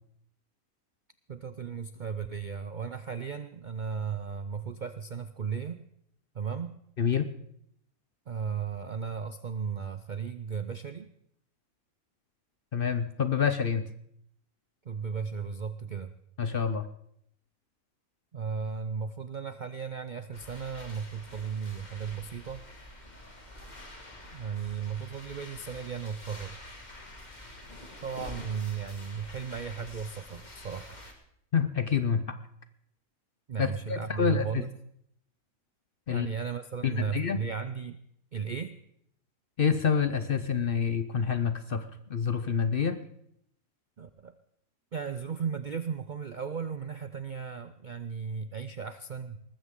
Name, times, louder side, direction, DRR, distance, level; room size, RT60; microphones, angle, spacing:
voice 1, 1.3-5.8 6.3-6.7 8.3-11.1 14.8-16.2 18.3-22.6 24.3-26.6 28.0-31.0 33.5-34.7 36.1-38.0 38.3-38.8 44.0-44.3 44.9-49.4, right 6 dB, 55° right, 11 dB, 0.5 m, -35 dB
voice 2, 12.7-13.9 16.4-16.9 31.5-32.4 33.6-34.6 36.1-36.3 36.8-37.4 39.6-43.0, left 6 dB, 50° left, 11 dB, 0.7 m, -27 dB
sound 1, 20.3-31.1, left 1 dB, 30° left, 1.9 m, -47 dB
19.5 x 14.5 x 3.7 m, 0.72 s
omnidirectional pair, 1.5 m